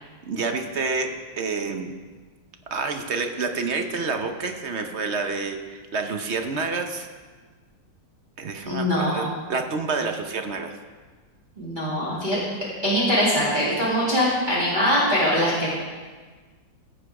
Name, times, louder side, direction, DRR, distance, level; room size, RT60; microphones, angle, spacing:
voice 1, 0.2-1.1 1.4-1.9 2.7-7.1 8.4-10.7, right 4 dB, 50° right, 5 dB, 0.9 m, -28 dB
voice 2, 8.6-9.3 11.6-12.4 12.8-15.7, equal, 25° right, -8 dB, 2.6 m, -22 dB
16.5 x 6.9 x 4.8 m, 1.4 s
omnidirectional pair, 1.9 m